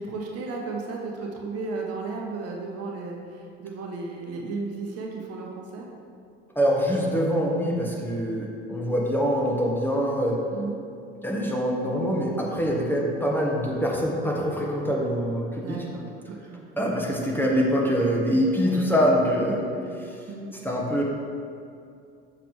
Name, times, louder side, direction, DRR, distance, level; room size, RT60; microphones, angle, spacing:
voice 1, 0.0-5.9 10.5-10.8 15.6-16.6 18.6-18.8 19.5-19.6 20.0-20.5, right 3 dB, 50° right, 0 dB, 1.0 m, -34 dB
voice 2, 6.5-10.4 11.2-15.8 16.8-19.6 20.1-20.2 20.6-21.0, equal, 5° left, -2 dB, 1.3 m, -24 dB
6.9 x 5.9 x 3.2 m, 2.4 s
hypercardioid pair, 65°, 30 cm